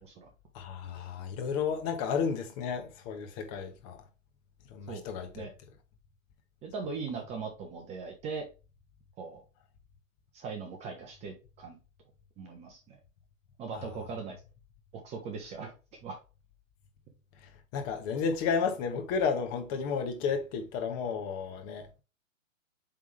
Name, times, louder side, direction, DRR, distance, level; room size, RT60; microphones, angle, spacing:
voice 1, 0.5-4.0 4.7-5.4 13.7-13.9 17.4-22.0, left 6 dB, 30° left, 1.2 m, -32 dB
voice 2, 6.6-8.5 9.2-9.4 10.3-11.7 12.4-13.0 13.6-14.4 14.9-15.7 16.0-16.2, right 5 dB, 15° right, 0.9 m, -39 dB
8.2 x 3.7 x 3.2 m
hypercardioid pair, 140°, 40 cm